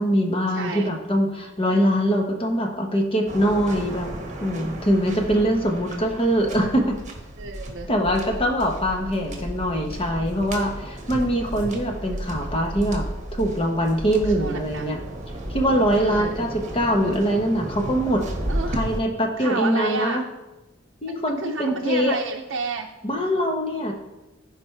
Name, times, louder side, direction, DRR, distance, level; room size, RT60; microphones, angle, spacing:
voice 1, 0.0-4.1 4.4-6.9 7.9-13.0 13.3-15.0 15.5-18.2 18.7-20.2 21.0-22.2 23.0-23.9, equal, 30° left, 2 dB, 1.1 m, -23 dB
voice 2, 0.5-0.9 7.4-7.9 14.2-14.8 16.0-16.4 18.5-18.7 19.4-20.2 21.1-22.9, right 4 dB, 65° right, 1 dB, 0.6 m, -31 dB
Waves surf, 3.3-19.0, right 1 dB, 40° right, 1.4 m, -33 dB
15.0 x 5.1 x 3.3 m, 1.0 s
head